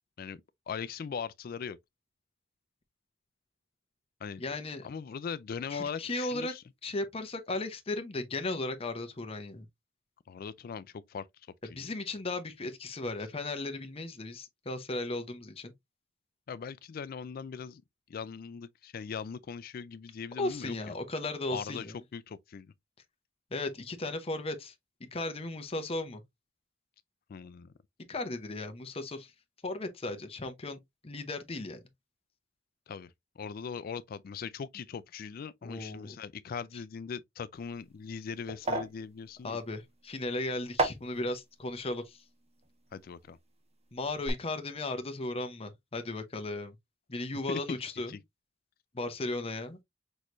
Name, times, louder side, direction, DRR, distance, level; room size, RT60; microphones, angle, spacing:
voice 1, 0.7-1.8 4.2-4.4 4.8-6.6 10.3-11.3 11.6-11.9 16.5-17.8 18.1-20.9 21.5-21.9 22.1-22.7 27.3-27.7 32.9-39.6 42.9-43.4 47.5-47.8 48.1-48.2, left 6 dB, 50° left, 0.3 m, -40 dB
voice 2, 4.4-4.9 5.7-6.5 6.8-9.7 11.8-15.7 20.4-22.0 23.5-24.7 25.1-26.2 28.1-29.3 29.6-30.8 31.0-31.8 35.6-36.2 39.4-42.2 43.9-46.7 47.1-48.2 48.9-49.8, left 2 dB, 30° left, 0.8 m, -36 dB
sound 1, 37.6-43.7 44.0-44.3, right 2 dB, 35° right, 1.0 m, -37 dB
6.3 x 3.1 x 2.5 m
head